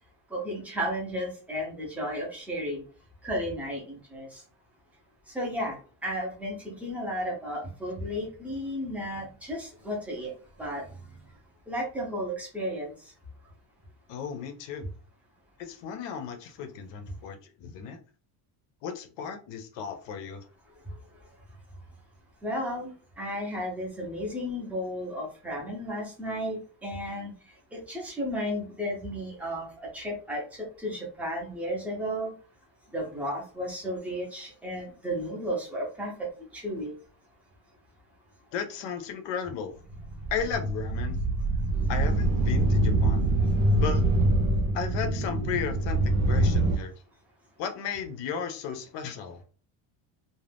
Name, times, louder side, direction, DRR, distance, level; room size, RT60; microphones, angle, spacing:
voice 1, 0.3-2.8 3.2-4.4 5.3-5.8 6.0-10.3 10.6-10.8 11.7-12.9 22.4-27.3 27.7-32.3 32.9-36.9, equal, 5° right, -2 dB, 0.5 m, -33 dB
voice 2, 14.1-14.9 15.6-18.0 18.8-20.4 38.5-39.7 40.3-41.2 41.9-43.3 43.8-44.1 44.7-46.9 47.6-49.4, left 7 dB, 60° left, 7 dB, 0.6 m, -35 dB
sound 1, 39.9-46.8, right 1 dB, 80° right, 0.8 m, -25 dB
2.5 x 2.2 x 3.3 m, 0.38 s
cardioid pair, 175°, 49 cm